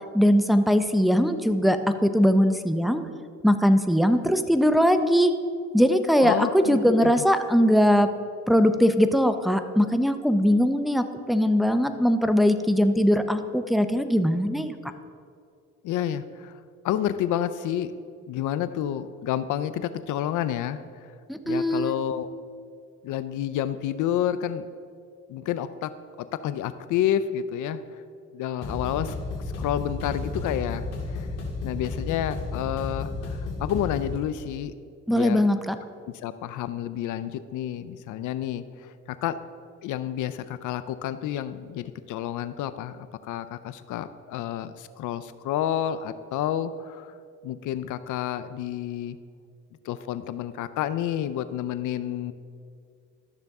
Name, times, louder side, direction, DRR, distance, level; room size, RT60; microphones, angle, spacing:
voice 1, 0.1-3.0 3.4-5.3 5.7-8.1 8.5-14.8 21.3-22.0 35.1-35.8, equal, ahead, 9 dB, 0.5 m, -21 dB
voice 2, 6.2-7.1 15.8-16.5 16.8-17.9 18.3-20.8 21.5-22.3 23.0-24.7 25.3-25.9 26.2-27.8 28.3-29.1 29.6-31.3 31.6-34.7 35.1-35.4 36.2-39.4 39.8-47.2 47.4-49.2 49.8-52.3, left 10 dB, 80° left, 14 dB, 0.5 m, -29 dB
sound 1, 28.6-34.2, left 3 dB, 55° left, 2.4 m, -33 dB
13.0 x 6.6 x 3.5 m, 2.2 s
cardioid pair, 90°, 30 cm